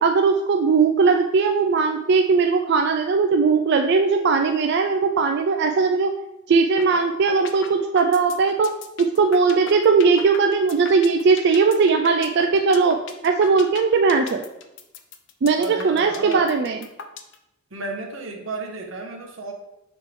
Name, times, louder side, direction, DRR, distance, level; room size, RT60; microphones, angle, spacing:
voice 1, 0.0-6.1 6.5-8.7 9.2-13.0 13.2-14.4 15.4-16.8, right 4 dB, 55° right, 5 dB, 0.4 m, -19 dB
sound 1, 6.8-7.0 7.3-17.3, left 6 dB, 65° left, 0.6 m, -37 dB
voice 2, 15.6-16.5 17.7-19.5, right 3 dB, 90° right, 2 dB, 1.2 m, -32 dB
6.7 x 3.2 x 4.8 m, 0.89 s
head